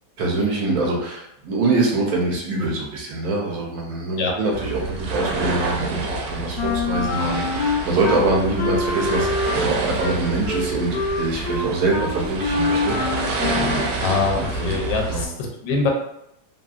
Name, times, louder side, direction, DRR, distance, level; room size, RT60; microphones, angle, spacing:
voice 1, 0.2-13.0 14.3-14.8 15.1-15.3, right 2 dB, 65° right, -1 dB, 1.1 m, -24 dB
sound 1, 4.5-15.3, right 3 dB, 85° right, 1.2 m, -28 dB
Wind instrument woodwind instrument, 6.6-8.2 8.6-13.9, left 3 dB, 60° left, 0.7 m, -25 dB
voice 2, 14.0-15.9, left 4 dB, 85° left, 1 dB, 1.2 m, -23 dB
2.9 x 2.5 x 2.4 m, 0.81 s
omnidirectional pair, 1.9 m